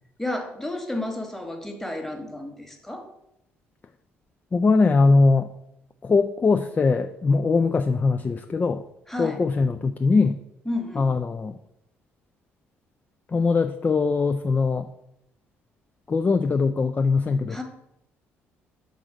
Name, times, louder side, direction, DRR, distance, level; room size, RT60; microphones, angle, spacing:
voice 1, 0.2-3.1 9.1-9.4 10.6-11.0 17.5-17.6, left 1 dB, 5° left, 4 dB, 1.3 m, -31 dB
voice 2, 4.5-5.5 6.0-8.8 9.2-10.4 11.0-11.6 13.3-14.9 16.1-17.6, left 4 dB, 25° left, 8 dB, 0.3 m, -21 dB
6.1 x 4.0 x 5.0 m, 0.80 s
figure-of-eight pair, 50°, 7 cm